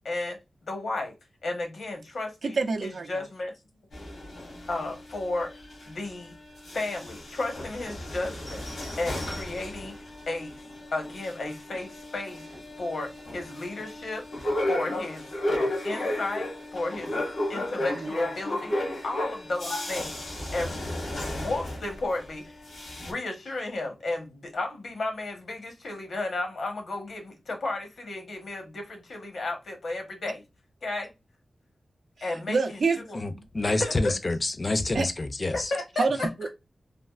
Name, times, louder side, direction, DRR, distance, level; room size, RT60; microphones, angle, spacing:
voice 1, 0.0-1.1 1.4-3.5 4.7-5.5 5.9-6.4 6.7-8.6 9.0-10.6 10.9-12.5 12.8-14.2 14.7-17.2 17.5-18.7 19.0-20.2 20.5-20.8 21.2-22.6 23.1-30.4 30.8-31.1 32.2-32.6 33.1-33.2 33.6-34.2 35.5-36.0, left 2 dB, 75° left, 0.9 m, -33 dB
voice 2, 2.4-3.2 17.7-18.2 32.2-33.0 34.9-35.1 36.0-36.5, right 4 dB, 70° right, 0.4 m, -28 dB
sound 1, 3.9-6.3 6.6-22.3 22.6-23.1, left 1 dB, 90° left, 1.3 m, -34 dB
voice 3, 33.2-35.7, left 2 dB, 35° left, 0.4 m, -28 dB
3.4 x 2.3 x 2.3 m
wide cardioid pair, 110°, 0 cm